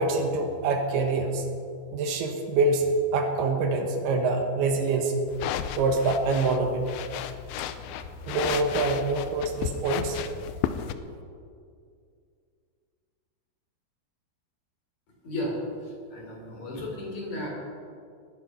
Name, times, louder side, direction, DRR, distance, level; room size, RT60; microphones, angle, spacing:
voice 1, 0.0-1.5 1.9-5.2 5.7-6.8 8.2-10.2, right 3 dB, 75° right, 4 dB, 3.2 m, -25 dB
sound 1, 5.3-10.9, left 10 dB, 80° left, 2.4 m, -33 dB
voice 2, 15.8-17.5, left 1 dB, 45° left, -2 dB, 4.5 m, -34 dB
20.0 x 10.5 x 5.6 m, 2.3 s
omnidirectional pair, 4.7 m